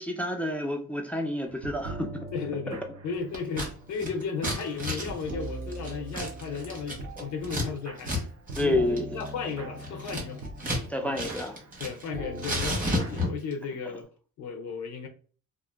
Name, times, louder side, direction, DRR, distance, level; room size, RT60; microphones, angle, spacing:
voice 1, 0.0-2.3 8.6-9.1 10.9-11.6, left 1 dB, 5° left, 0.4 m, -29 dB
sound 1, 1.5-13.1, right 2 dB, 60° right, 0.7 m, -42 dB
voice 2, 2.3-8.1 8.6-10.7 11.0-11.2 11.8-14.1 14.4-15.1, left 5 dB, 70° left, 0.6 m, -35 dB
Scissors, 3.3-3.7 4.0-7.7 8.0-8.2 8.5-8.7 9.0-10.9 11.1-12.1 12.4-13.5, left 1 dB, 25° right, 1.3 m, -32 dB
2.9 x 2.4 x 2.3 m
cardioid pair, 90°, 30 cm